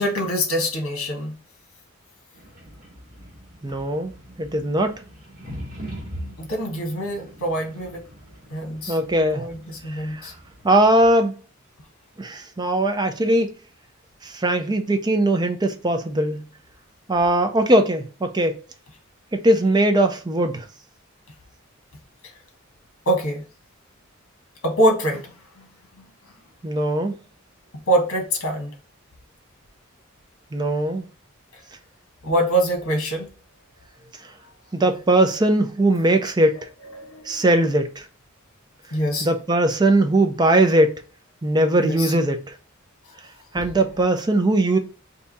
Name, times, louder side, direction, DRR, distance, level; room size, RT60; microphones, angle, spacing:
voice 1, 0.0-1.3 6.4-8.0 8.5-9.0 9.3-10.3 23.1-23.4 24.6-25.3 27.9-28.7 32.2-33.3 36.9-37.4 38.9-39.3 41.8-42.1 43.5-43.7, right 1 dB, 80° left, 1.3 m, -24 dB
sound 1, 2.3-11.1, equal, 40° right, 1.6 m, -41 dB
voice 2, 3.6-4.1 4.4-4.9 8.9-9.4 9.9-10.3 10.6-11.3 12.2-13.5 14.2-16.4 17.1-18.6 19.3-20.7 26.6-27.2 30.5-31.0 34.7-36.6 37.3-38.1 39.2-40.9 41.4-42.5 43.5-44.8, right 1 dB, 20° right, 0.5 m, -20 dB
3.5 x 2.8 x 4.0 m
head